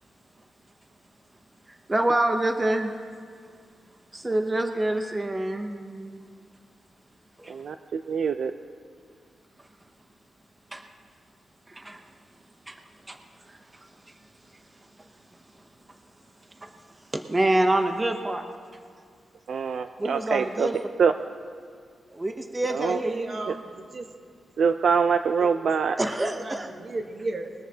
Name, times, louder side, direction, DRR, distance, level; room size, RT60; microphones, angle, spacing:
voice 1, 1.7-3.1 4.1-6.2 7.4-7.5 10.7-10.8 11.7-12.0 12.7-12.8 13.1-14.2 14.5-15.1 15.9-16.0 16.6-18.4 20.0-20.9 22.1-23.4 26.0-26.8, right 1 dB, 20° right, 5 dB, 0.7 m, -28 dB
voice 2, 7.5-8.5 19.5-20.7 21.0-21.1 22.7-23.0 23.5-23.6 24.6-26.0, right 6 dB, 65° right, 9 dB, 0.4 m, -24 dB
voice 3, 23.0-24.1 25.4-25.5 26.5-27.5, right 3 dB, 40° right, 4 dB, 1.2 m, -34 dB
21.0 x 13.5 x 2.8 m, 2.1 s
wide cardioid pair, 145°, 0 cm